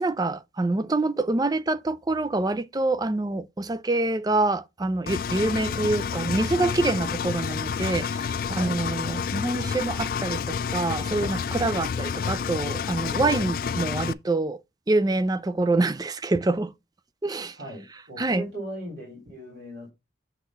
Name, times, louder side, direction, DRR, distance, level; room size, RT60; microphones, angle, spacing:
voice 1, 0.0-14.6 14.9-16.7 17.2-17.6 18.2-18.5, right 2 dB, 20° right, 0.4 m, -26 dB
Engine, 5.1-14.1, left 6 dB, 55° left, 0.3 m, -29 dB
voice 2, 13.2-13.5 17.6-19.9, equal, 80° right, 3.4 m, -37 dB
8.1 x 3.5 x 5.6 m
head